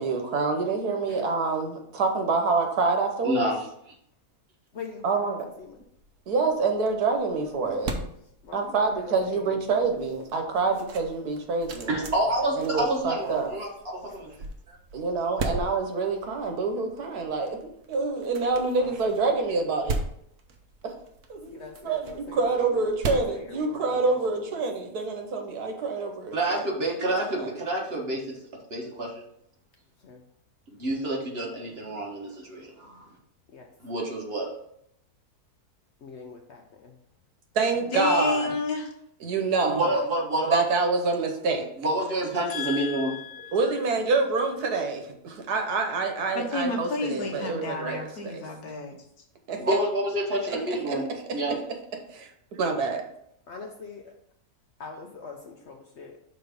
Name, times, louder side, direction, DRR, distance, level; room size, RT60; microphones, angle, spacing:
voice 1, 0.0-3.4 5.0-5.5 6.3-7.9 8.5-11.9 12.6-13.5 14.9-17.6 17.9-20.0 20.8-20.9 21.3-26.6 27.4-27.5 37.5-38.5 39.2-39.9 40.5-41.7 43.5-48.4 49.5-49.8 50.5-50.6 50.8-51.0 52.1-53.0, right 4 dB, 80° right, 4 dB, 1.5 m, -27 dB
voice 2, 3.2-3.7 11.9-13.7 14.0-14.3 14.7-14.8 26.3-28.2 28.7-29.1 30.7-33.0 33.8-34.5 39.6-40.6 41.8-43.1 49.6-51.1 51.3-51.6, right 1 dB, 40° right, -2 dB, 1.6 m, -28 dB
voice 3, 4.7-5.8 7.3-8.1 8.4-9.8 12.3-12.5 12.9-13.5 14.0-14.5 18.5-19.0 21.5-24.2 30.0-30.2 33.5-33.7 36.0-37.0 53.5-54.1 54.8-56.2, left 4 dB, 60° left, 3 dB, 0.8 m, -44 dB
sound 1, 5.6-24.3, right 3 dB, 60° right, 1.1 m, -39 dB
voice 4, 37.9-38.9 42.5-43.6 46.4-48.9, left 3 dB, 75° left, 1 dB, 1.6 m, -30 dB
5.6 x 3.9 x 5.2 m, 0.72 s
omnidirectional pair, 1.6 m